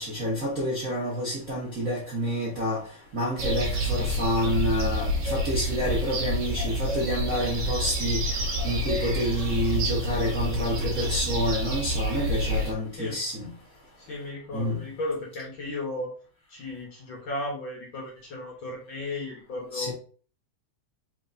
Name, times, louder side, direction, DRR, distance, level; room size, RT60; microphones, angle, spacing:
voice 1, 0.0-2.8 3.1-8.2 8.6-13.5 14.5-14.8 19.7-19.9, equal, 85° right, 0.7 m, -28 dB
sound 1, 3.4-12.7, equal, 55° right, 1.2 m, -28 dB
voice 2, 14.0-16.1 16.5-19.9, left 2 dB, 55° left, 1.4 m, -35 dB
4.4 x 4.3 x 2.6 m
omnidirectional pair, 3.5 m